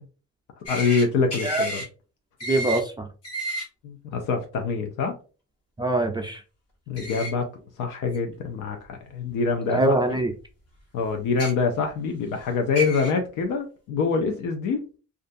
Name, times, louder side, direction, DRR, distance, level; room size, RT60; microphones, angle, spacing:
voice 1, 0.7-1.8 3.8-5.2 6.9-7.5 7.8-10.0 10.9-14.8, left 4 dB, 80° left, 4 dB, 0.5 m, -25 dB
sound 1, 0.7-1.0 1.3-1.8 2.4-2.8 3.2-3.6 7.0-7.3 8.1-8.2 9.5-9.6 11.3-11.5 12.4-12.5 12.8-13.1, right 1 dB, 55° left, 1.2 m, -31 dB
voice 2, 2.5-3.1 5.8-6.4 9.7-10.3, right 2 dB, 15° right, 3 dB, 0.4 m, -23 dB
2.4 x 2.3 x 2.6 m, 0.35 s
cardioid pair, 90°, 30 cm